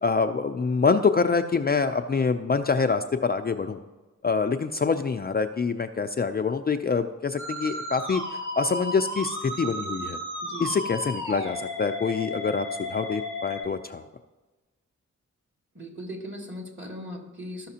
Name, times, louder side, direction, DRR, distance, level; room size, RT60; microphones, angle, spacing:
voice 1, 0.0-3.8 4.2-8.2 8.6-10.2 10.6-14.0, left 5 dB, 30° left, 7 dB, 0.4 m, -25 dB
Musical instrument, 7.4-13.6, left 1 dB, 80° right, 2.6 m, -34 dB
voice 2, 10.4-10.8 15.7-17.7, equal, 40° right, 1 dB, 2.4 m, -38 dB
14.0 x 5.8 x 2.8 m, 1.2 s
cardioid pair, 60°, 31 cm